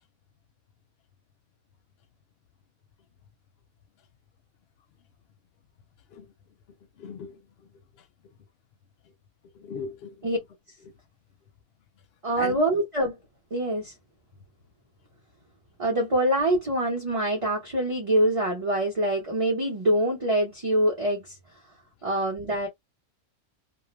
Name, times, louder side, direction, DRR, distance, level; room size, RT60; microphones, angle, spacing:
voice 1, 6.7-8.3 9.1-9.2 9.4-10.3 10.9-11.0 12.4-12.6, left 6 dB, 60° left, 0.7 m, -40 dB
voice 2, 12.2-13.2 13.5-13.9 15.8-21.3 22.0-22.7, right 1 dB, 30° right, 0.8 m, -25 dB
2.3 x 2.1 x 3.0 m
omnidirectional pair, 1.3 m